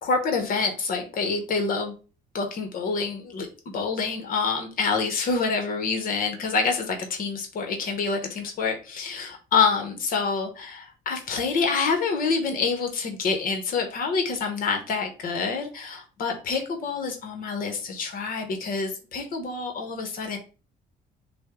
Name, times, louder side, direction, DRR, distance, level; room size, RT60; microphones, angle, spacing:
voice 1, 0.0-1.9 2.3-3.5 3.7-20.4, left 4 dB, 60° left, 5 dB, 0.9 m, -27 dB
6.1 x 2.1 x 3.5 m, 0.35 s
cardioid pair, 110°, 17 cm